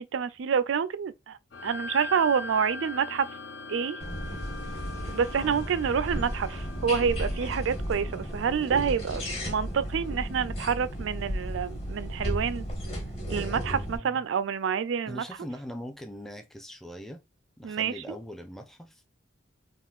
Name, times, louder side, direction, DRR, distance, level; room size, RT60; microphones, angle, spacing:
voice 1, 0.0-1.4 1.6-3.3 3.7-4.0 5.1-12.6 13.3-15.2 17.6-17.9, right 6 dB, 75° right, 0.4 m, -28 dB
sound 1, 1.5-10.3, left 3 dB, 60° left, 0.5 m, -42 dB
sound 2, 4.0-14.0, equal, 30° left, 1.2 m, -34 dB
voice 2, 13.7-14.3 15.1-17.2 17.6-19.0, equal, ahead, 0.4 m, -41 dB
3.6 x 2.5 x 2.3 m
head